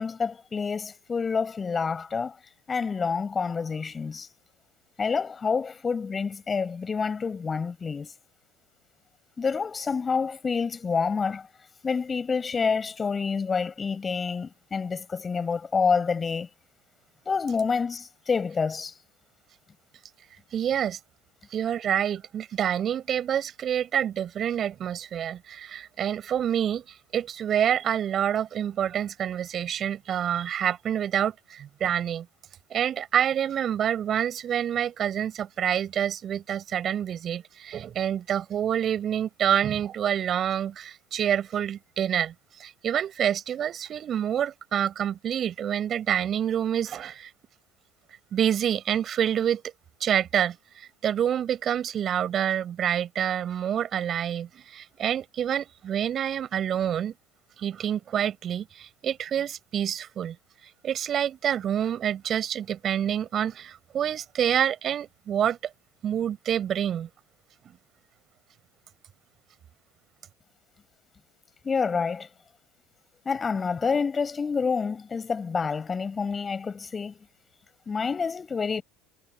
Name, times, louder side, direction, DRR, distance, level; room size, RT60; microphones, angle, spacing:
voice 1, 0.0-2.4 2.7-4.3 5.0-8.1 9.4-11.5 11.8-16.5 17.2-18.9 71.6-72.3 73.2-77.2 77.9-78.8, left 5 dB, 25° left, 6.5 m, -28 dB
voice 2, 20.5-21.0 21.5-32.3 32.7-42.3 42.6-47.3 48.3-49.6 50.0-57.1 57.6-60.4 60.8-65.6 66.0-67.1, right 9 dB, 40° right, 7.8 m, -27 dB
figure-of-eight pair, 65°, 0 cm